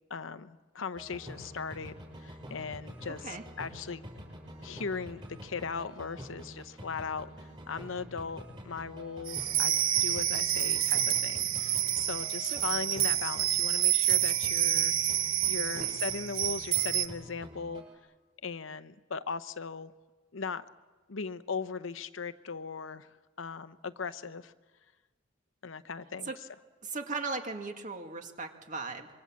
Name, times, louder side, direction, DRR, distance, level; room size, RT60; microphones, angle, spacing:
voice 1, 0.1-4.1 4.6-14.9 15.5-17.8 18.4-19.9 20.3-20.6 21.1-24.5 25.6-26.3, left 5 dB, 70° left, 12 dB, 0.8 m, -38 dB
sound 1, 0.9-13.8 14.1-18.0, equal, 25° right, 6.9 m, -47 dB
sound 2, 9.3-17.1, right 12 dB, 85° right, 1.2 m, -28 dB
voice 2, 26.8-29.1, right 3 dB, 40° right, 5 dB, 2.2 m, -37 dB
26.0 x 24.5 x 7.5 m, 1.3 s
head